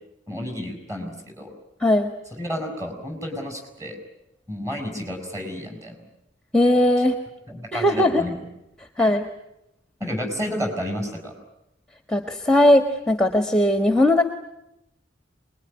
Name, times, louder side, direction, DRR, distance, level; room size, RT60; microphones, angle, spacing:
voice 1, 0.3-1.5 2.4-4.0 4.5-6.0 7.5-8.4 9.0-9.1 10.0-11.3, equal, 15° right, 4 dB, 6.0 m, -31 dB
voice 2, 1.8-2.1 6.5-7.2 7.7-8.2 8.8-9.3 12.1-14.2, left 1 dB, 5° left, 6 dB, 1.5 m, -19 dB
25.5 x 21.5 x 9.8 m, 0.85 s
head